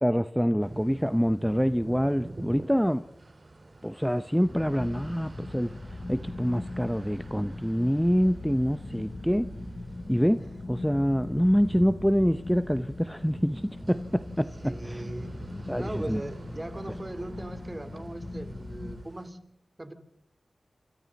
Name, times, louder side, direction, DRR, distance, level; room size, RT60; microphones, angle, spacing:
voice 1, 0.0-3.0 3.8-5.7 6.1-9.5 10.1-10.4 10.7-15.0 15.7-16.2, equal, ahead, 11 dB, 0.8 m, -26 dB
sound 1, 0.6-19.3, right 2 dB, 50° right, 2.7 m, -47 dB
sound 2, 4.4-18.9, left 2 dB, 50° left, 6.6 m, -40 dB
voice 2, 14.6-15.3 15.7-19.4 19.8-19.9, right 1 dB, 30° right, 7 dB, 3.6 m, -39 dB
27.0 x 27.0 x 4.2 m, 0.76 s
cardioid pair, 50°, 0 cm